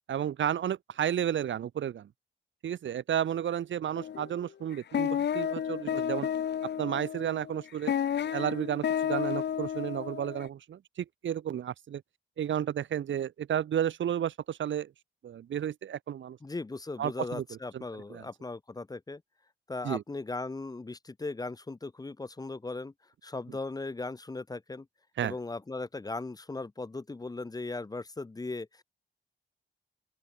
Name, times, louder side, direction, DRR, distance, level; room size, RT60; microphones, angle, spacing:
voice 1, 0.1-2.1 2.6-6.3 6.8-7.9 8.3-12.0 12.4-14.9 15.2-16.4 17.0-17.4 17.7-17.8 18.1-18.2 19.8-20.0 25.2-25.3, right 10 dB, 85° right, 1.3 m, -32 dB
sound 1, 3.9-4.4 4.7-10.5, left 9 dB, 65° left, 0.9 m, -32 dB
voice 2, 16.4-19.2 19.7-22.9 23.2-24.9 25.2-28.8, left 3 dB, 20° left, 0.9 m, -38 dB
open air
wide cardioid pair, 130°, 19 cm